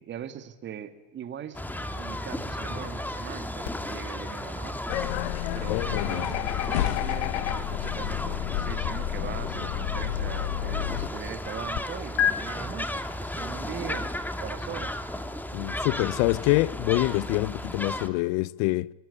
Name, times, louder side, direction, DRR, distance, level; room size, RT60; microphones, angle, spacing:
voice 1, 0.0-1.6 1.9-4.8 5.5-14.1 14.4-15.0, right 9 dB, 35° right, 2.4 m, -40 dB
sound 1, 1.5-18.1, left 1 dB, 5° left, 1.9 m, -34 dB
sound 2, 3.6-11.8 12.2-12.3, left 9 dB, 45° left, 1.3 m, -36 dB
sound 3, 4.9-11.1, left 14 dB, 80° left, 1.4 m, -30 dB
voice 2, 5.7-6.3 15.5-18.9, left 21 dB, 60° left, 0.8 m, -26 dB
24.5 x 20.5 x 10.0 m
supercardioid pair, 115°, 33 cm